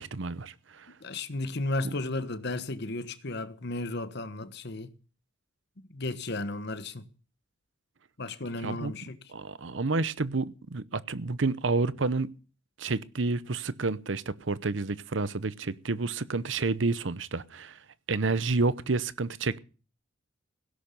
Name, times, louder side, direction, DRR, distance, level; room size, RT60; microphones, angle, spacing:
voice 1, 0.0-0.9 1.8-1.9 8.6-8.9 9.3-12.3 12.8-17.8 18.1-19.6, right 3 dB, 70° right, 0.8 m, -29 dB
voice 2, 1.0-4.9 5.9-7.0 8.2-9.2, left 2 dB, 60° left, 1.3 m, -34 dB
17.0 x 11.5 x 6.7 m
head